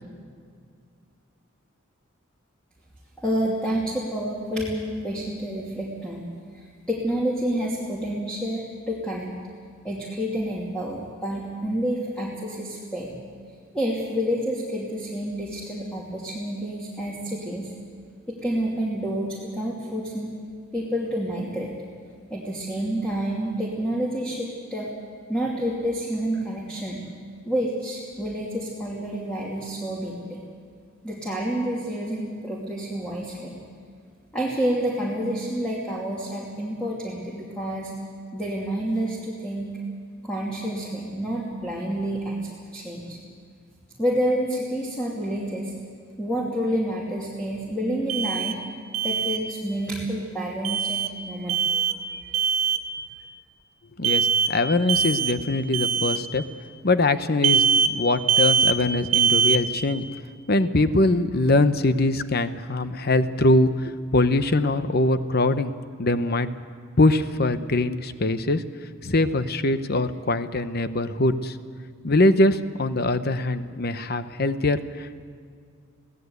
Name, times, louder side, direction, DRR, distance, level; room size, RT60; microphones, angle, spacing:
voice 1, 3.2-6.3 6.5-9.4 9.8-13.1 13.7-17.7 18.3-20.3 20.7-21.7 22.3-24.9 25.3-27.0 27.4-30.4 31.0-33.6 34.3-37.9 38.3-39.8 40.2-43.2 44.0-45.7 46.2-48.6 49.0-52.3, equal, 5° left, -5 dB, 2.7 m, -29 dB
Alarm, 48.1-48.6 48.9-49.4 50.7-51.1 51.5-52.0 52.3-52.8 54.0-54.5 54.9-55.4 55.7-56.2 57.4-57.9 58.3-58.8 59.1-59.6, right 6 dB, 90° right, 1.1 m, -22 dB
voice 2, 54.0-56.4 56.8-60.1 60.5-65.7 66.0-66.5 67.0-68.6 69.0-71.5 72.0-75.2, left 2 dB, 50° left, 11 dB, 0.9 m, -22 dB
23.0 x 17.0 x 8.1 m, 2.1 s
head